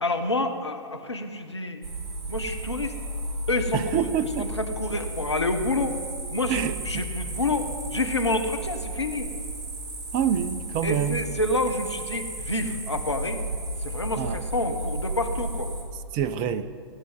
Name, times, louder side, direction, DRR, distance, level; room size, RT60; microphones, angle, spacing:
voice 1, 0.0-1.8 2.3-2.9 3.5-4.1 4.4-6.0 6.3-9.3 10.8-13.4 13.8-15.7, left 2 dB, 85° left, 6 dB, 1.4 m, -28 dB
sound 1, 1.8-15.8, right 2 dB, 50° right, 4.1 m, -34 dB
voice 2, 3.7-4.4 6.5-6.7 10.1-11.2 14.2-14.4 16.1-16.7, right 8 dB, 35° right, 13 dB, 0.7 m, -26 dB
17.0 x 8.7 x 8.1 m, 2.3 s
figure-of-eight pair, 110°, 14 cm